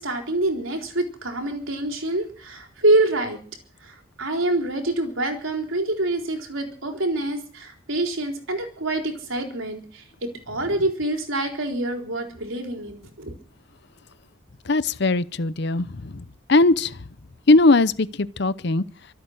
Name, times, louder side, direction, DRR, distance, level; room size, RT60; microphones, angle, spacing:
voice 1, 0.0-3.4 3.8-13.3, right 2 dB, 75° right, 4.1 m, -26 dB
voice 2, 14.7-16.2 16.5-16.9 17.5-18.8, left 2 dB, 55° left, 0.7 m, -19 dB
25.0 x 8.5 x 6.5 m
head